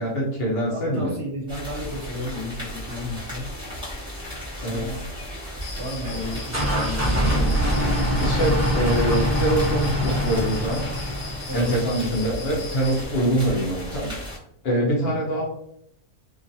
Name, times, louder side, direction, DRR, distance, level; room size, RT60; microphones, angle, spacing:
voice 1, 0.0-1.1 4.6-4.9 8.2-10.9 11.5-14.1 14.6-15.4, right 1 dB, 55° left, -3 dB, 0.8 m, -24 dB
voice 2, 0.7-3.5 4.7-5.1 5.8-7.5 11.5-12.2 15.0-15.3, left 1 dB, 60° right, -1 dB, 0.8 m, -33 dB
sound 1, 1.5-14.4, equal, 5° right, 1.0 m, -36 dB
Cricket, 5.6-13.1, left 4 dB, 85° left, 1.0 m, -41 dB
sound 2, 6.0-11.6, equal, 25° right, 0.4 m, -24 dB
2.4 x 2.3 x 2.6 m, 0.73 s
omnidirectional pair, 1.4 m